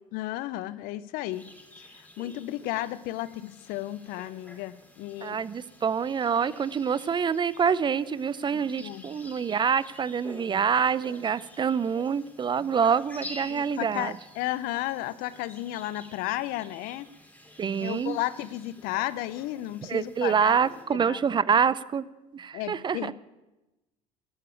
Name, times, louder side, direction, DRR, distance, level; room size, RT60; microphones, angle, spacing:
voice 1, 0.1-1.5 1.8-5.4 8.5-9.0 13.5-17.1 17.8-20.6 20.9-21.2 22.5-23.1, left 15 dB, 65° left, 17 dB, 0.6 m, -33 dB
sound 1, 1.3-20.8, left 1 dB, 10° left, 3.9 m, -49 dB
voice 2, 5.2-14.2 17.6-18.2 19.8-22.0 22.3-23.1, right 7 dB, 30° right, 19 dB, 0.5 m, -26 dB
11.5 x 6.8 x 8.4 m, 1.0 s
hypercardioid pair, 70°, 16 cm